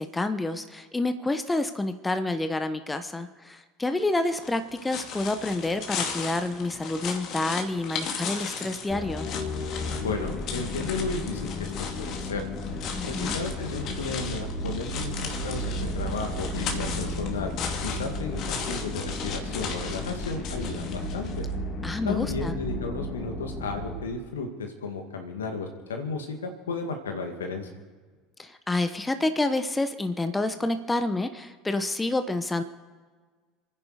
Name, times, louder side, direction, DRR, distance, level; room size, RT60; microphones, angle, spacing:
voice 1, 0.0-9.3 12.9-13.4 21.8-22.5 28.4-32.6, left 2 dB, 15° left, 9 dB, 1.1 m, -28 dB
sound 1, 4.2-21.4, left 6 dB, 50° left, 2.3 m, -37 dB
sound 2, 8.9-24.0, left 1 dB, 35° left, 3.2 m, -33 dB
voice 2, 10.0-11.7 12.0-12.4 13.0-17.5 17.8-21.5 22.1-27.7, left 4 dB, 80° left, 4 dB, 2.1 m, -34 dB
28.0 x 10.0 x 5.0 m, 1.4 s
hypercardioid pair, 70°, 0 cm